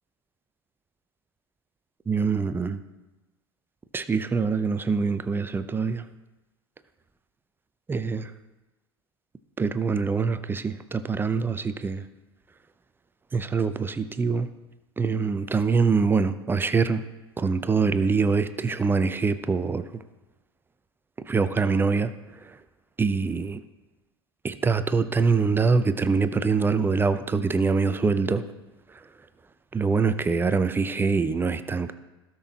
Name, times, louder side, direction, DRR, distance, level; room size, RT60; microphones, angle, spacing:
voice 1, 2.1-2.8 3.9-6.0 7.9-8.3 9.6-12.0 13.3-14.5 15.0-17.0 17.4-19.8 21.3-22.1 22.5-22.6 23.0-23.6 24.4-28.4 29.7-31.9, right 5 dB, 15° right, 12 dB, 0.6 m, -24 dB
17.0 x 6.1 x 2.9 m, 1.1 s
figure-of-eight pair, 75°, 14 cm